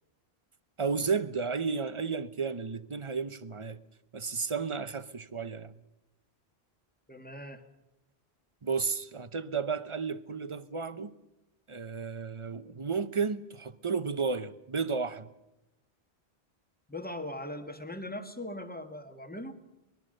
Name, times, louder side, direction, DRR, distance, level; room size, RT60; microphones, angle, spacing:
voice 1, 0.8-3.8 4.1-5.7 8.6-11.1 11.7-15.3, right 5 dB, 30° right, 0.9 m, -33 dB
voice 2, 7.1-7.6 16.9-19.6, left 1 dB, 10° left, 1.8 m, -40 dB
25.0 x 21.0 x 6.6 m
omnidirectional pair, 1.1 m